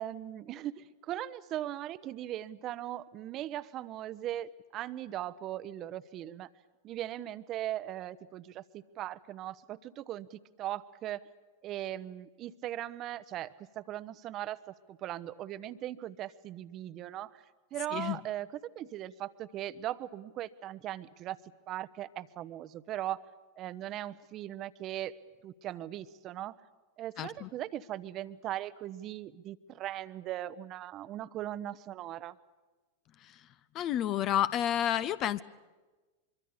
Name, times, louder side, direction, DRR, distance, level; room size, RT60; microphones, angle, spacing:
voice 1, 0.0-6.5 6.8-11.2 11.6-14.6 14.9-17.4 17.7-18.5 18.7-21.4 21.7-23.2 23.6-25.1 25.4-26.6 27.0-32.4, right 13 dB, 35° right, 16 dB, 1.0 m, -39 dB
voice 2, 27.2-27.5 33.2-33.4 33.7-35.4, left 11 dB, 35° left, 15 dB, 0.7 m, -30 dB
24.5 x 24.0 x 8.3 m, 1.2 s
figure-of-eight pair, 90°, 0 cm